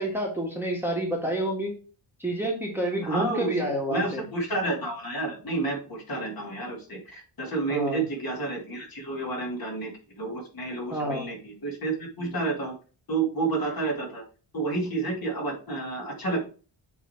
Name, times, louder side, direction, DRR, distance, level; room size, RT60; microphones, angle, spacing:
voice 1, 0.0-1.7 2.2-4.2 7.7-8.0 10.9-11.2, right 1 dB, 5° right, -1 dB, 1.7 m, -28 dB
voice 2, 3.0-3.5 3.9-9.9 10.2-12.7 13.1-14.2 14.5-16.4, right 3 dB, 45° left, -1 dB, 2.6 m, -30 dB
8.2 x 3.4 x 4.4 m, 0.37 s
wide cardioid pair, 135°, 49 cm